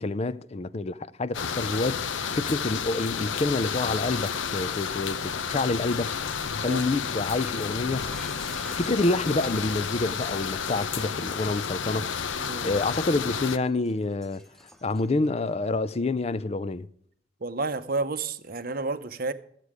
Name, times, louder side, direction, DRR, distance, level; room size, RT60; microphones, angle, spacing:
voice 1, 0.0-6.1 6.5-8.0 8.7-12.3 12.6-14.4 14.8-16.9, left 2 dB, 30° left, 0.4 m, -28 dB
sound 1, 1.3-13.6, left 6 dB, 75° left, 0.7 m, -31 dB
Shatter, 7.9-15.3, equal, ahead, 0.7 m, -49 dB
voice 2, 12.4-12.8 17.4-19.3, right 3 dB, 45° right, 0.7 m, -31 dB
13.5 x 8.3 x 4.9 m
head